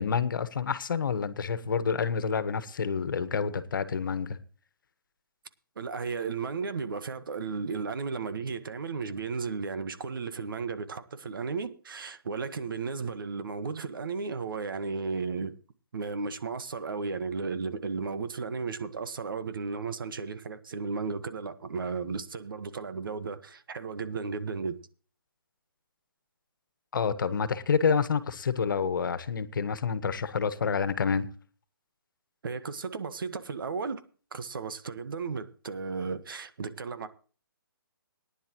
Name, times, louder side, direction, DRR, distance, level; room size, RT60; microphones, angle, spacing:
voice 1, 0.0-4.4 26.9-31.3, left 6 dB, 60° left, 1.4 m, -28 dB
voice 2, 5.7-15.5 15.9-24.8 32.4-34.0 34.3-37.1, right 4 dB, 70° right, 1.5 m, -34 dB
19.0 x 10.5 x 3.1 m
hypercardioid pair, 155°, 12 cm